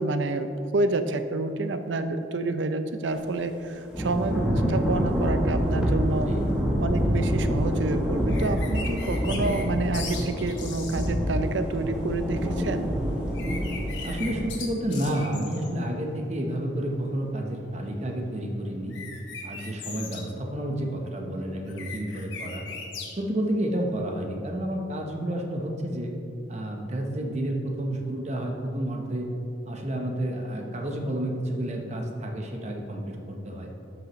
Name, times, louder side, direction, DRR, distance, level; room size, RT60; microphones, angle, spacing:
voice 1, 0.0-6.3 6.8-13.0, right 2 dB, 80° right, 9 dB, 0.6 m, -28 dB
Thunder / Rain, 3.9-14.5, equal, 5° right, 1.1 m, -26 dB
voice 2, 6.1-6.5 14.0-19.0 19.4-22.6 23.2-26.1 26.5-29.3 29.7-33.7, right 1 dB, 35° right, 1 dB, 1.0 m, -30 dB
sound 1, 8.3-9.6 9.9-11.1 13.3-15.7 18.9-20.2 21.7-23.1, left 5 dB, 85° left, 1.3 m, -39 dB
12.5 x 6.1 x 3.1 m, 2.7 s
head